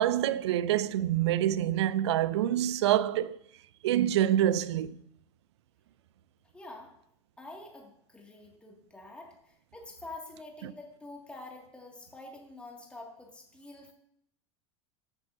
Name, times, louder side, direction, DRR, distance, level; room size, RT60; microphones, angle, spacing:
voice 1, 0.0-3.4 3.8-5.0 10.6-10.7, right 12 dB, 65° right, 0.4 m, -26 dB
voice 2, 6.5-6.9 7.4-13.9, left 2 dB, 5° left, 2.1 m, -47 dB
14.0 x 8.2 x 2.7 m
figure-of-eight pair, 80°, 15 cm